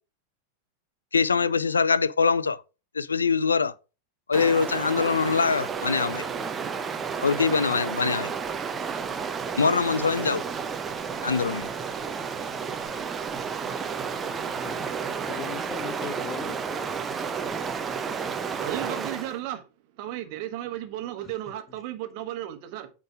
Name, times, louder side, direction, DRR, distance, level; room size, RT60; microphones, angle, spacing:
voice 1, 1.1-2.6 2.9-3.7 4.3-6.3 7.2-8.3 9.6-10.4 11.2-11.7, left 5 dB, 75° left, 0.4 m, -23 dB
Stream, 4.3-19.4, right 6 dB, 20° right, 0.8 m, -32 dB
voice 2, 14.5-14.9 15.3-16.6 21.2-21.4 21.7-21.8, left 8 dB, 25° left, 1.1 m, -39 dB
voice 3, 18.6-19.6 20.0-22.9, right 13 dB, 45° right, 1.4 m, -34 dB
9.0 x 3.8 x 5.0 m
figure-of-eight pair, 90°, 0 cm